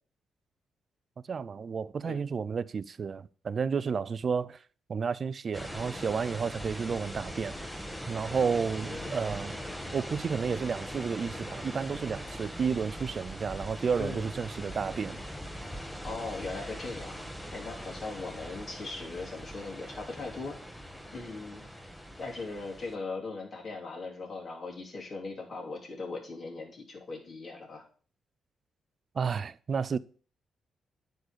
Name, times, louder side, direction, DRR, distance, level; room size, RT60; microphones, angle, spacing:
voice 1, 1.3-4.6 4.9-7.6 8.1-9.5 9.9-15.2 29.1-30.0, right 6 dB, 45° right, 0.4 m, -31 dB
sound 1, 5.5-23.0, equal, 5° left, 1.1 m, -41 dB
voice 2, 8.8-9.2 14.0-14.3 16.0-17.1 17.5-20.6 21.1-21.6 22.2-27.8, left 3 dB, 45° left, 3.1 m, -39 dB
9.6 x 4.0 x 6.7 m
cardioid pair, 90°, 0 cm